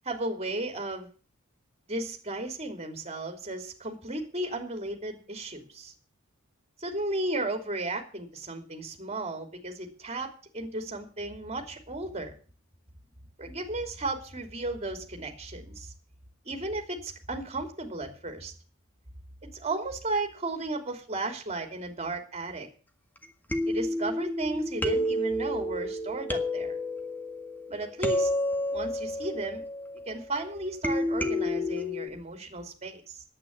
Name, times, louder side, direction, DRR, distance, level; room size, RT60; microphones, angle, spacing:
voice 1, 0.0-1.1 1.9-5.9 6.8-10.3 10.5-12.3 13.4-15.9 16.4-18.5 19.4-22.7 23.7-26.8 27.7-28.3 28.7-29.6 30.1-33.2, right 2 dB, 30° right, 4 dB, 3.0 m, -34 dB
sound 1, 23.2-23.3 23.5-30.3 30.8-32.1, left 1 dB, 10° left, 1.6 m, -30 dB
11.0 x 8.9 x 8.7 m, 0.39 s
head